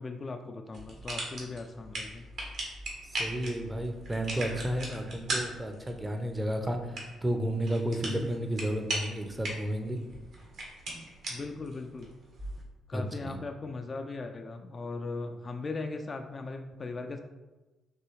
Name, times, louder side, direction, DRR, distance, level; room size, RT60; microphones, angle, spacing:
voice 1, 0.0-2.3 8.1-8.4 11.3-12.1 12.9-17.2, left 3 dB, 35° left, 5 dB, 0.3 m, -38 dB
sound 1, 0.7-12.6, right 1 dB, 60° right, 1.3 m, -39 dB
voice 2, 3.0-10.0 12.9-13.4, right 1 dB, 15° right, 5 dB, 0.6 m, -32 dB
5.4 x 3.0 x 3.1 m, 1.2 s
figure-of-eight pair, 40°, 0 cm